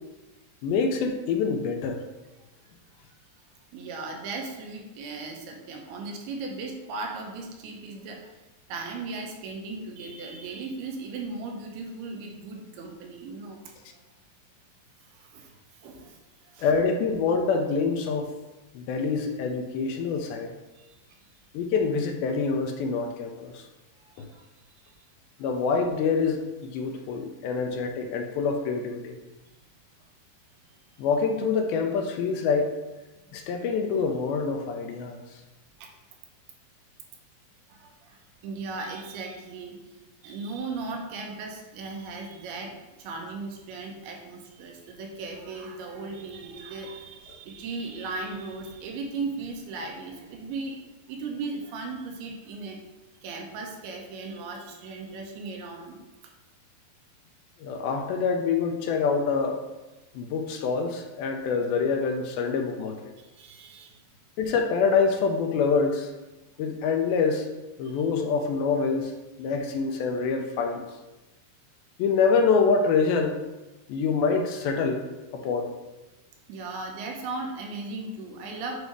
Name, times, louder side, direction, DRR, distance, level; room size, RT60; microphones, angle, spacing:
voice 1, 0.6-2.0 16.6-18.3 18.8-20.5 21.5-23.6 24.2-24.3 25.4-29.2 31.0-32.7 33.3-35.2 57.6-59.6 60.2-63.0 64.4-66.1 66.6-67.5 67.8-69.1 69.4-70.8 72.0-73.4 73.9-75.1 75.3-75.7, left 5 dB, 80° left, 4 dB, 2.4 m, -26 dB
voice 2, 3.7-13.7 15.0-16.2 16.5-16.7 20.7-21.2 24.0-25.0 30.7-30.8 33.3-33.7 35.8-35.9 37.7-50.8 51.1-52.8 53.2-56.0 63.2-64.0 67.8-68.0 76.5-78.8, right 3 dB, 85° right, 2 dB, 2.8 m, -37 dB
7.9 x 2.7 x 4.7 m, 1.1 s
omnidirectional pair, 4.4 m